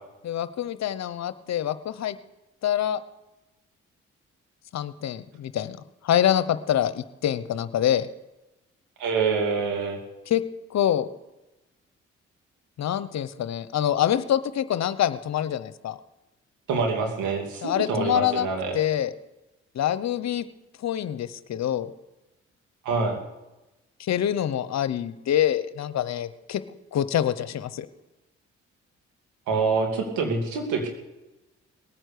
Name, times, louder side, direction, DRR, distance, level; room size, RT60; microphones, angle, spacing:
voice 1, 0.2-2.2 2.6-3.0 4.7-5.8 6.0-8.1 10.3-10.4 10.7-11.1 12.8-16.0 17.6-18.5 18.7-19.1 19.7-20.4 20.8-21.9 24.0-26.6 26.9-27.9, left 11 dB, 65° left, 14 dB, 1.0 m, -25 dB
voice 2, 9.0-10.0 16.7-18.8 22.8-23.2 29.5-30.9, right 4 dB, 85° right, 3 dB, 2.7 m, -26 dB
19.0 x 9.1 x 6.7 m, 1.0 s
supercardioid pair, 55°, 29 cm